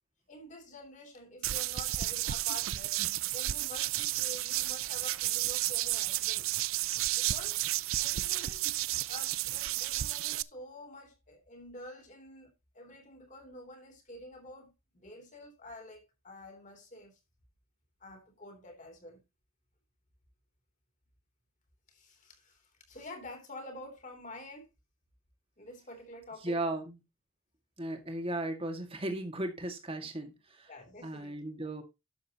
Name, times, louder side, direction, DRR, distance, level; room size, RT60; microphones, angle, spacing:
voice 1, 0.3-3.0 3.3-6.5 7.1-7.6 8.0-8.7 9.1-12.5 12.7-17.2 18.0-19.2 21.9-24.7 25.6-26.6 30.7-31.4, left 1 dB, 35° left, 3.3 m, -48 dB
sound 1, 1.4-10.4, right 16 dB, 70° right, 0.4 m, -32 dB
voice 2, 26.4-27.0 27.8-30.7 31.0-31.8, right 1 dB, 25° right, 2.0 m, -36 dB
12.0 x 7.7 x 2.9 m
head